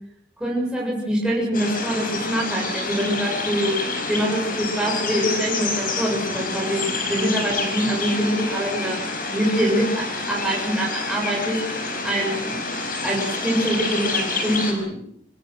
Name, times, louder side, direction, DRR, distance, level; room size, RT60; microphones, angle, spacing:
voice 1, 0.4-3.8 4.1-9.0 9.3-12.6 13.0-15.0, equal, 5° right, -3 dB, 7.3 m, -24 dB
sound 1, 1.5-14.7, left 3 dB, 50° left, 5.0 m, -28 dB
26.0 x 20.0 x 6.4 m, 0.69 s
head